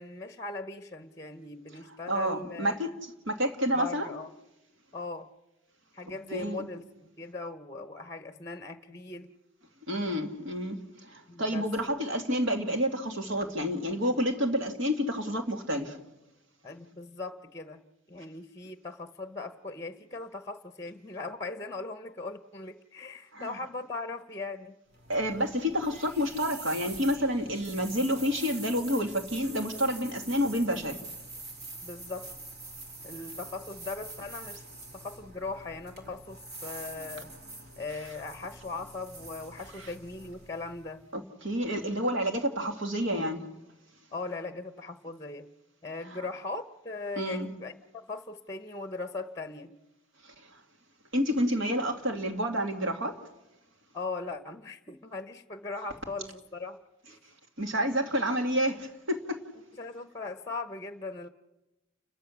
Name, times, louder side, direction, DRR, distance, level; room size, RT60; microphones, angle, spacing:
voice 1, 0.0-2.8 3.7-4.3 4.9-5.3 5.9-6.9 7.2-9.3 11.3-11.6 16.6-17.8 18.1-24.7 31.8-32.3 33.0-34.6 34.9-37.3 37.8-41.0 44.1-45.5 45.8-49.7 53.9-56.8 57.1-57.2 57.8-57.9 59.8-61.3, left 3 dB, 15° left, 10 dB, 0.9 m, -39 dB
voice 2, 2.1-2.9 3.3-4.1 6.3-6.7 9.9-16.0 23.3-23.6 25.1-31.0 39.8-39.9 41.1-43.4 46.1-46.2 47.2-47.5 50.2-50.3 51.1-53.2 57.6-59.4, equal, 70° right, 5 dB, 2.2 m, -29 dB
sound 1, 24.9-41.1, right 2 dB, 55° right, 3.4 m, -45 dB
29.5 x 13.5 x 7.2 m, 0.98 s
head